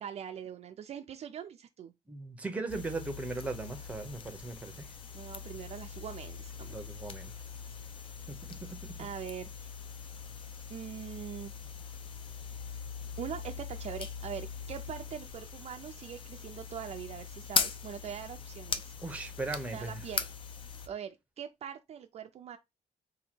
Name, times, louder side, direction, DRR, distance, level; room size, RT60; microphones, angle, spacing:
voice 1, 0.0-1.9 5.1-6.8 9.0-9.7 10.7-11.5 13.2-18.9 19.7-20.2 20.9-22.6, right 9 dB, 50° right, 0.4 m, -42 dB
voice 2, 2.1-4.9 6.7-7.3 8.3-8.9 19.0-20.0, right 3 dB, 10° right, 0.6 m, -38 dB
sound 1, 2.7-20.9, left 6 dB, 40° left, 0.4 m, -40 dB
2.7 x 2.7 x 4.3 m
wide cardioid pair, 170°, 14 cm